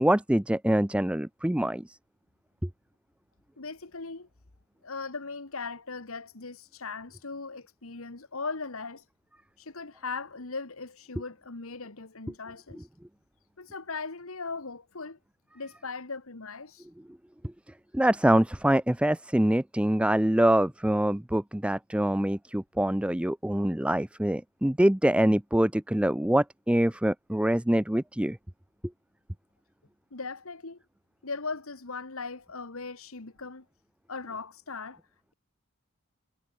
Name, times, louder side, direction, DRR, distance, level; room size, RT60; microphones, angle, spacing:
voice 1, 0.0-2.0 17.9-28.4, right 1 dB, 5° right, 0.5 m, -25 dB
voice 2, 3.6-4.3 4.8-9.0 9.6-12.9 13.6-15.2 15.5-16.9 30.1-30.8 31.2-33.6 34.1-35.0, left 4 dB, 70° left, 1.6 m, -38 dB
head